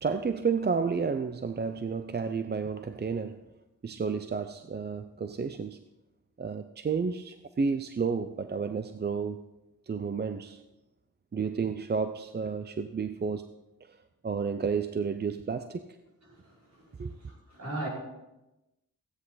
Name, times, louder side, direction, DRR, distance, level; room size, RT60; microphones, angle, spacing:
voice 1, 0.0-3.4 3.8-5.8 6.4-9.4 9.9-10.6 11.3-13.5 13.9-14.0 14.2-15.8 17.0-17.1, right 5 dB, 30° right, 0.5 m, -31 dB
voice 2, 16.3-16.9 17.2-17.9, right 2 dB, 50° right, 5.6 m, -39 dB
15.5 x 9.7 x 4.0 m
wide cardioid pair, 95°, 34 cm